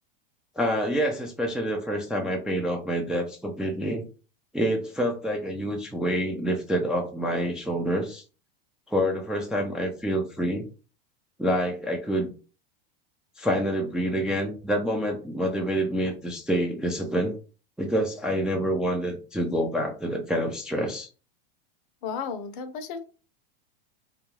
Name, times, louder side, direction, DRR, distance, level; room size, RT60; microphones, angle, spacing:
voice 1, 0.6-4.0 4.5-8.2 8.9-10.7 11.4-12.3 13.4-17.4 17.8-21.1, equal, 5° right, 1 dB, 0.3 m, -27 dB
voice 2, 22.0-23.0, left 6 dB, 60° left, 9 dB, 0.6 m, -33 dB
2.4 x 2.3 x 3.0 m, 0.35 s
hypercardioid pair, 105°, 29 cm